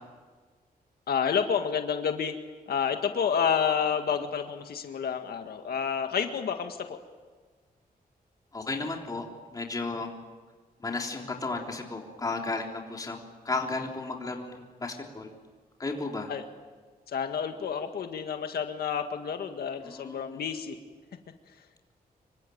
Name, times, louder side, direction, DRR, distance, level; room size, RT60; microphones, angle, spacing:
voice 1, 1.1-2.4 2.7-7.0 16.3-16.4 17.1-20.8, left 7 dB, 85° left, 6 dB, 1.8 m, -29 dB
voice 2, 8.5-9.3 9.5-10.1 10.8-13.2 13.4-15.3 15.8-16.3 19.8-20.2, left 3 dB, 25° left, 1 dB, 3.6 m, -33 dB
26.5 x 23.5 x 9.3 m, 1.4 s
wide cardioid pair, 175°, 16 cm